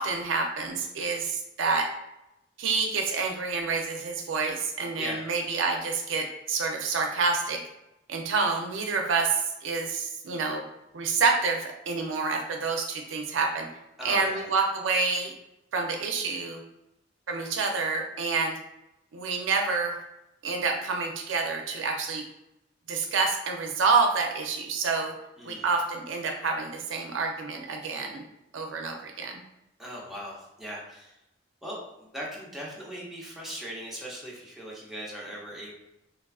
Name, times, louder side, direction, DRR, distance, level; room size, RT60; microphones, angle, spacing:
voice 1, 0.0-1.9 2.6-7.6 8.1-10.6 10.9-13.7 14.0-15.3 15.7-16.6 17.3-18.6 19.1-20.0 20.4-22.2 22.9-25.1 25.5-28.2 28.5-29.4, right 4 dB, 85° right, 3 dB, 0.5 m, -28 dB
voice 2, 5.0-5.3 14.0-14.5 25.4-25.7 29.8-31.2 31.6-35.7, equal, ahead, -5 dB, 0.6 m, -39 dB
3.3 x 2.3 x 2.3 m, 0.88 s
head